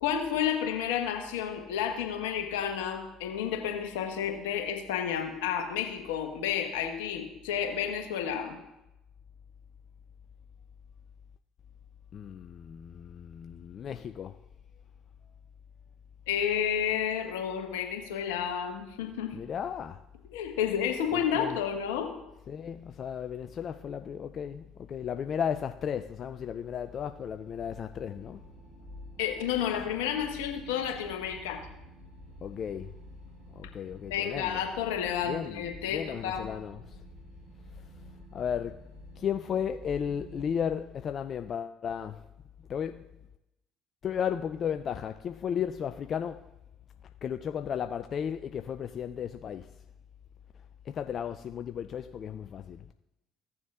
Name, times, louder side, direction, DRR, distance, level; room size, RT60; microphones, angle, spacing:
voice 1, 0.0-8.6 16.3-19.4 20.3-22.1 29.2-31.7 34.1-36.5, left 8 dB, 80° left, 1.2 m, -31 dB
voice 2, 12.1-14.4 19.3-20.0 21.1-21.6 22.5-28.4 32.4-32.9 33.6-34.6 35.2-37.0 38.3-38.8 39.2-42.2 42.7-43.1 44.0-46.4 47.2-49.7 50.9-52.9, left 8 dB, 50° left, 0.4 m, -34 dB
sound 1, 26.1-40.7, equal, 85° right, 3.7 m, -50 dB
15.5 x 7.0 x 2.4 m
hypercardioid pair, 60°, 0 cm